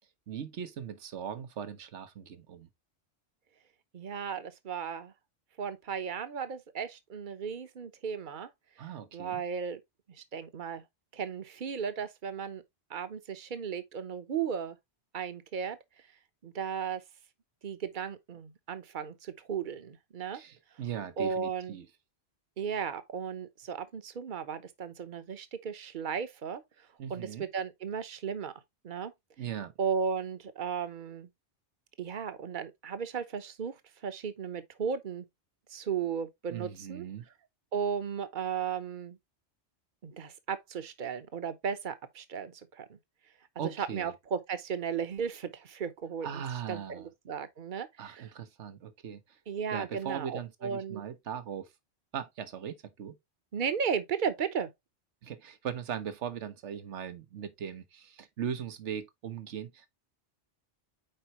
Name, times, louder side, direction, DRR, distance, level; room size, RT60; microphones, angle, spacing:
voice 1, 0.3-2.7 8.8-9.4 20.3-21.9 27.0-27.5 29.4-29.7 36.5-37.3 43.6-44.1 46.2-47.1 48.0-49.2 49.7-51.7 52.1-53.2 55.2-59.9, right 8 dB, 80° right, 1.3 m, -39 dB
voice 2, 3.9-5.1 5.6-8.5 9.1-9.8 10.1-10.8 11.1-12.6 12.9-14.8 15.1-15.8 16.4-17.0 17.6-20.4 21.2-21.8 22.6-28.5 28.8-29.1 29.8-31.3 32.0-33.7 34.0-35.3 35.7-37.0 37.7-39.2 40.0-43.0 43.6-46.4 46.7-48.3 49.5-51.0 53.5-54.7, right 7 dB, 45° right, 1.0 m, -35 dB
8.9 x 4.5 x 2.9 m
omnidirectional pair, 1.2 m